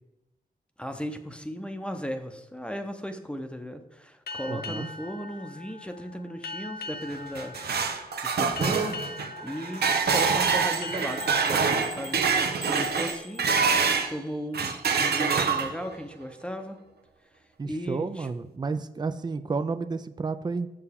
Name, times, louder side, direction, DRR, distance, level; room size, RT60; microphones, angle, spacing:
voice 1, 0.8-7.9 8.2-13.7 14.1-16.8 17.6-18.3, equal, 5° left, 6 dB, 0.7 m, -36 dB
sound 1, 4.3-13.5, left 3 dB, 70° left, 0.7 m, -42 dB
voice 2, 4.5-4.9 17.6-20.7, right 4 dB, 25° right, 11 dB, 0.4 m, -31 dB
sound 2, 7.1-14.1 14.5-15.9, right 5 dB, 80° right, 0.7 m, -25 dB
sound 3, 10.7-13.9, right 1 dB, 45° left, 1.0 m, -44 dB
6.9 x 6.7 x 3.6 m, 0.96 s
cardioid pair, 75°, 16 cm